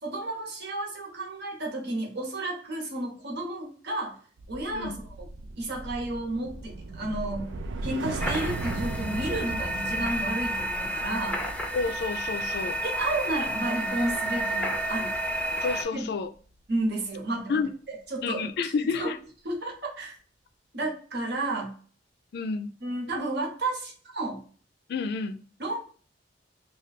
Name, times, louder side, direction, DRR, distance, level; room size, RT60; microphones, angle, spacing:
voice 1, 0.0-4.2 4.5-5.3 5.6-7.5 7.8-11.4 12.8-15.2 15.9-16.1 16.7-17.6 17.9-19.1 19.4-20.1 20.7-21.7 22.8-24.4 25.6-25.8, right 2 dB, 60° right, 1.1 m, -32 dB
sound 1, 4.4-14.8 15.1-15.4, right 3 dB, 80° right, 0.5 m, -37 dB
sound 2, 8.2-15.8, right 1 dB, 5° left, 0.5 m, -31 dB
voice 2, 11.7-12.8 15.6-16.3 17.5-17.7 18.2-19.2 22.3-22.7 24.9-25.4, left 4 dB, 60° left, 0.4 m, -30 dB
3.1 x 2.3 x 4.0 m
head